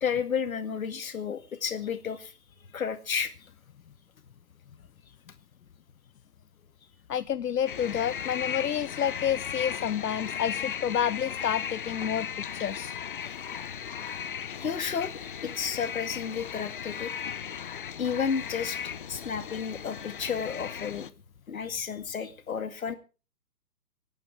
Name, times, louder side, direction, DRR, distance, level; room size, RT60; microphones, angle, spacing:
voice 1, 0.0-2.3 2.7-3.3 13.2-13.4 14.6-17.1 18.0-21.1 21.5-22.9, left 7 dB, 60° left, 2.2 m, -32 dB
voice 2, 7.1-12.9, left 9 dB, 80° left, 0.7 m, -29 dB
sound 1, 7.7-21.1, left 8 dB, 35° left, 0.7 m, -36 dB
25.0 x 9.1 x 4.8 m
figure-of-eight pair, 135°, 47 cm